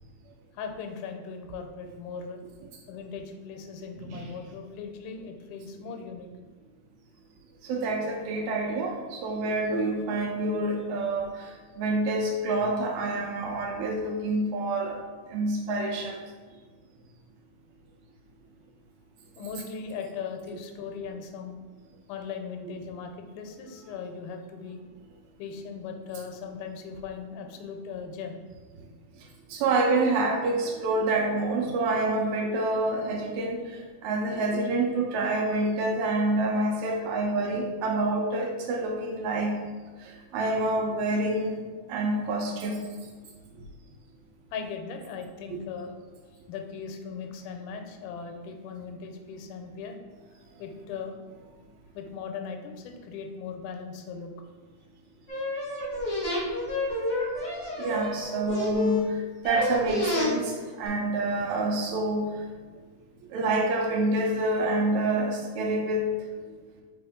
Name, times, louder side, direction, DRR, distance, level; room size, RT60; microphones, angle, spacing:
voice 1, 0.5-2.4 2.9-6.3 19.4-21.6 22.1-24.8 25.4-28.4 37.0-37.1 43.4-43.6 44.5-45.9 46.5-50.0 50.6-51.2 51.9-54.3 61.6-61.7, left 5 dB, 90° left, 4 dB, 2.1 m, -38 dB
voice 2, 7.6-11.3 11.8-15.0 15.3-16.2 29.5-33.6 34.0-39.6 40.3-41.6 41.9-42.8 45.5-45.6 57.8-59.0 59.5-62.3 63.3-66.1, right 2 dB, 80° right, 1 dB, 1.8 m, -27 dB
sound 1, 55.3-59.0 59.4-60.3 60.8-60.9, left 2 dB, 60° left, 0.7 m, -29 dB
4.1 x 3.5 x 3.6 m, 1.4 s
omnidirectional pair, 3.5 m